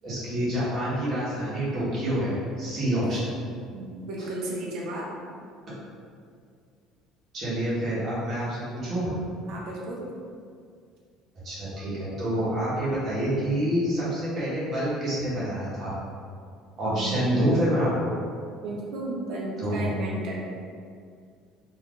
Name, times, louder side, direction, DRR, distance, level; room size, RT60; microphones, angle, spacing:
voice 1, 0.0-3.3 4.2-4.3 7.3-9.1 11.4-15.9 16.8-18.1 19.6-19.9, equal, 35° right, -9 dB, 1.1 m, -27 dB
voice 2, 3.7-5.1 9.5-10.0 16.8-17.3 18.6-20.5, right 2 dB, 60° right, -3 dB, 0.7 m, -34 dB
2.6 x 2.4 x 3.7 m, 2.2 s
cardioid pair, 145°, 0 cm